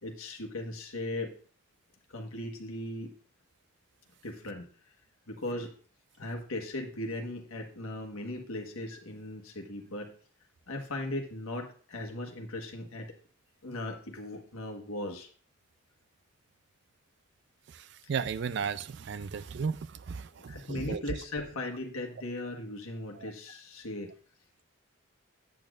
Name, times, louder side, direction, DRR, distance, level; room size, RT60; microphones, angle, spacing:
voice 1, 0.0-1.3 2.1-3.1 4.2-4.7 5.3-5.7 6.2-10.1 10.7-13.1 13.6-15.3 20.3-24.1, left 1 dB, 85° left, 1.4 m, -38 dB
voice 2, 18.1-21.0 23.2-23.3, right 6 dB, 55° right, 0.4 m, -34 dB
8.5 x 8.4 x 2.5 m
head